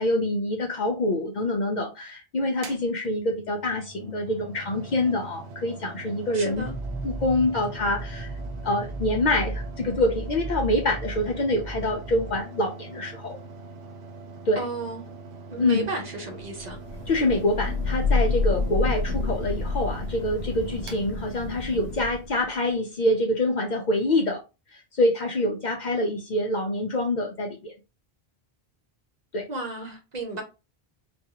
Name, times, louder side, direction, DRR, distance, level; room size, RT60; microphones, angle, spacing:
voice 1, 0.0-6.7 7.0-8.3 8.6-13.4 14.5-14.7 15.6-15.9 17.1-24.4 24.7-27.7 29.3-29.5, left 1 dB, 55° left, 0.6 m, -26 dB
Mechanical fan, 2.5-21.9, right 3 dB, 85° right, 0.9 m, -43 dB
voice 2, 6.3-6.7 14.6-15.0 15.5-16.8 29.5-30.4, right 2 dB, 50° right, 0.7 m, -33 dB
sound 1, 6.5-12.4, right 2 dB, 40° left, 1.0 m, -35 dB
Thunder / Rain, 16.7-22.4, left 3 dB, 85° left, 0.8 m, -28 dB
2.5 x 2.3 x 2.8 m
omnidirectional pair, 1.1 m